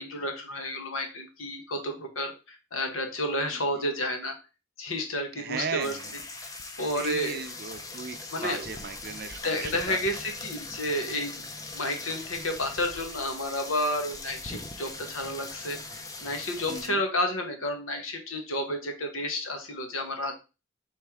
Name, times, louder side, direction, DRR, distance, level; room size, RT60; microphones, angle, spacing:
voice 1, 0.0-4.3 4.8-6.0 6.8-7.4 8.3-8.6 9.4-11.3 11.7-20.4, left 1 dB, 90° left, 1.1 m, -31 dB
voice 2, 5.4-6.0 6.9-8.2 8.4-10.0 16.7-17.0, right 5 dB, 50° right, 0.5 m, -36 dB
sound 1, 5.8-16.9, left 3 dB, 15° left, 0.4 m, -41 dB
4.4 x 3.2 x 3.5 m
head